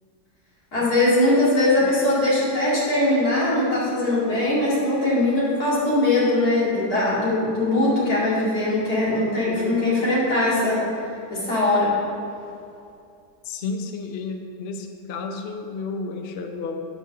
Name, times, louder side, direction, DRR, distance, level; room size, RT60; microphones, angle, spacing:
voice 1, 0.7-10.9 11.3-12.0, left 2 dB, 55° left, -8 dB, 2.8 m, -21 dB
voice 2, 13.4-16.8, left 4 dB, 90° left, 5 dB, 0.5 m, -32 dB
8.0 x 5.1 x 6.5 m, 2.5 s
omnidirectional pair, 1.9 m